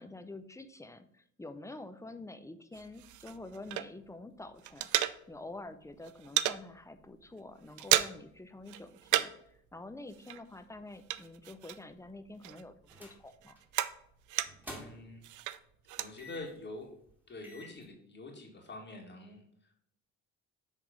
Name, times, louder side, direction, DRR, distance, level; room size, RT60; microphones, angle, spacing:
voice 1, 0.0-4.9 5.3-13.6, left 2 dB, 10° left, 10 dB, 0.7 m, -47 dB
sound 1, 2.7-4.2 4.5-5.6 5.9-6.6 7.0-7.2 7.5-8.4 8.7-9.5 9.8-12.1 12.4-14.8 15.2-16.1, right 13 dB, 80° right, 0.5 m, -33 dB
sound 2, 12.9-13.2 13.6-13.8 14.4-15.2 16.2-16.6 17.1-17.2 17.4-17.8, equal, 5° right, 2.3 m, -48 dB
voice 2, 14.7-15.2 16.0-16.9 17.3-19.9, left 2 dB, 35° left, 0 dB, 2.0 m, -46 dB
7.8 x 3.6 x 5.1 m, 0.71 s
cardioid pair, 90°, 30 cm